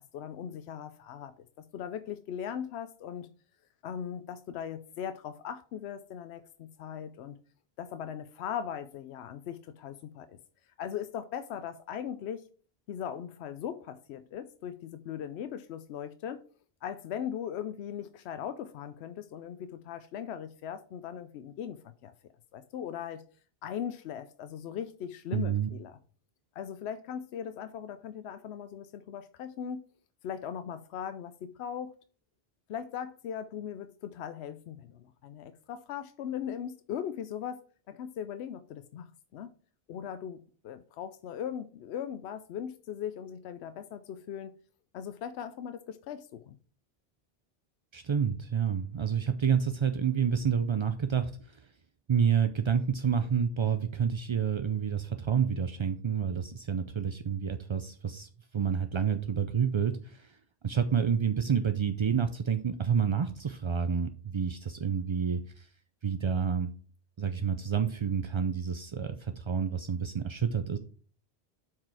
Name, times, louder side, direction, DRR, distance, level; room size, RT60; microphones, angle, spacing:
voice 1, 0.0-3.3 3.8-7.4 7.8-10.4 10.8-12.5 12.9-16.4 16.8-22.1 22.5-23.2 23.6-26.0 26.6-29.8 30.2-31.9 32.7-39.5 39.9-44.5 44.9-46.6, left 9 dB, 85° left, 0.8 m, -39 dB
voice 2, 25.3-25.7 47.9-51.6 52.1-60.4 60.6-65.7 66.0-66.7 67.2-70.8, right 7 dB, 45° right, 0.3 m, -29 dB
7.4 x 4.8 x 4.7 m
omnidirectional pair, 1.1 m